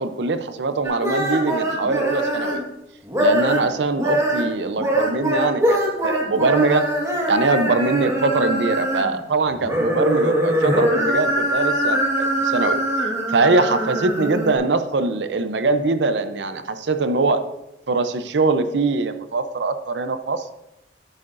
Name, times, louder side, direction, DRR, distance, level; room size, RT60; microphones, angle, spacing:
voice 1, 0.0-2.6 3.2-6.9 7.3-12.8 13.3-17.5 17.9-20.4, right 3 dB, 80° right, 10 dB, 0.6 m, -22 dB
sound 1, 0.8-2.6 3.1-3.7 3.9-9.2 9.5-14.5, equal, 15° right, 1.5 m, -22 dB
10.5 x 8.5 x 2.5 m, 0.93 s
head